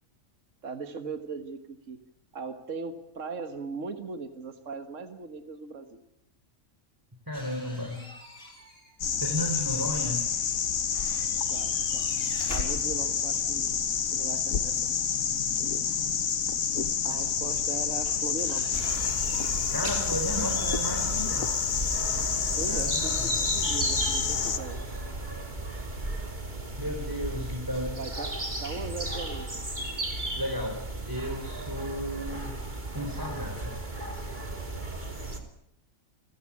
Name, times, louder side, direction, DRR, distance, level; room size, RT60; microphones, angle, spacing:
voice 1, 0.6-2.0 2.3-6.0 11.5-12.1 12.5-13.7 14.1-15.0 17.0-18.8 22.6-25.0 28.0-28.3 28.6-29.6, right 4 dB, 65° right, 8 dB, 2.0 m, -39 dB
sound 1, 7.3-9.0 9.2-10.6 10.9-13.7 16.0-16.1 16.7-20.8, equal, 45° left, 6.7 m, -46 dB
voice 2, 7.3-8.1 9.2-10.3 13.6-13.7 15.8-16.2 19.7-21.5 22.7-23.3 26.8-28.0 30.4-32.6 32.9-33.7, equal, 15° right, 2 dB, 3.8 m, -34 dB
sound 2, 9.0-24.6, left 7 dB, 80° left, 1.6 m, -28 dB
sound 3, 18.7-35.4, right 2 dB, 35° right, 3.1 m, -35 dB
29.5 x 15.0 x 8.6 m, 0.78 s
omnidirectional pair, 1.4 m